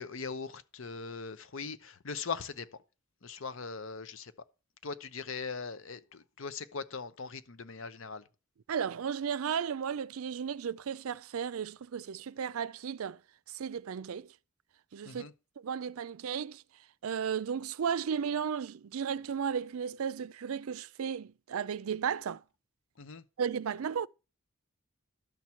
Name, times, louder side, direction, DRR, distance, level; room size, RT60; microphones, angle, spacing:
voice 1, 0.0-2.7 3.2-4.3 4.8-8.2 15.1-15.3 23.0-23.2, left 5 dB, 65° left, 0.8 m, -40 dB
voice 2, 8.7-13.2 13.5-14.3 14.9-16.6 17.0-22.4 23.4-24.1, right 7 dB, 80° right, 0.4 m, -34 dB
12.0 x 4.5 x 7.0 m
head